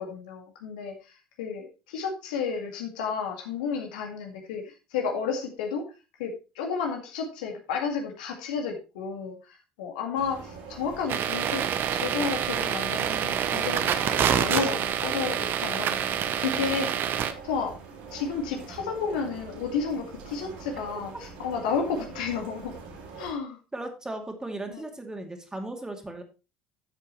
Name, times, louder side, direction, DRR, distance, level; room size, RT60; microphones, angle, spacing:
voice 1, 0.0-4.6 4.9-5.8 6.2-9.4 9.8-17.7 18.1-22.8 23.2-23.6 24.7-24.8, left 6 dB, 80° left, 3 dB, 2.1 m, -32 dB
sound 1, 10.2-23.3, right 5 dB, 75° right, 3.0 m, -43 dB
sound 2, 11.1-17.3, right 9 dB, 50° right, 1.0 m, -27 dB
voice 2, 23.7-26.2, right 2 dB, 15° right, 4 dB, 2.5 m, -36 dB
12.5 x 7.3 x 3.2 m, 0.30 s
hypercardioid pair, 65°, 4 cm